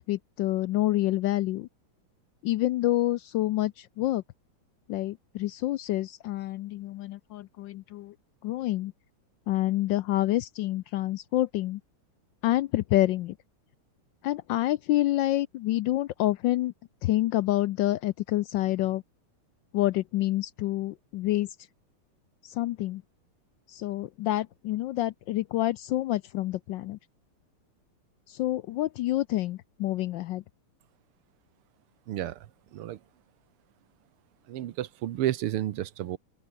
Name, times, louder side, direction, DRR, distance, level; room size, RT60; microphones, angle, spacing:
voice 1, 0.0-1.7 2.4-4.2 4.9-8.1 8.4-8.9 9.5-11.8 12.4-13.3 14.2-16.7 17.0-19.0 19.7-21.5 22.4-23.0 23.7-27.0 28.3-30.4, left 15 dB, 75° left, 1.1 m, -28 dB
voice 2, 32.1-32.4 32.7-33.0 34.5-36.2, right 13 dB, 85° right, 1.9 m, -31 dB
open air
omnidirectional pair, 2.4 m